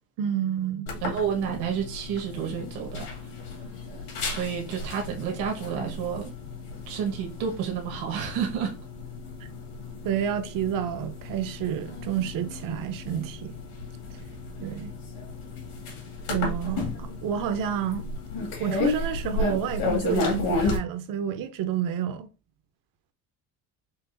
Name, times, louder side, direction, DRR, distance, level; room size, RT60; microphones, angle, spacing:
voice 1, 0.2-0.9 10.0-13.5 14.6-14.9 16.3-18.1 18.6-22.3, right 9 dB, 60° right, 0.8 m, -29 dB
sound 1, 0.9-20.8, left 3 dB, 70° left, 2.2 m, -33 dB
voice 2, 1.0-3.1 4.2-6.3 6.9-8.7, right 7 dB, 75° right, 1.4 m, -30 dB
5.9 x 2.5 x 2.6 m
cardioid pair, 115°, 38 cm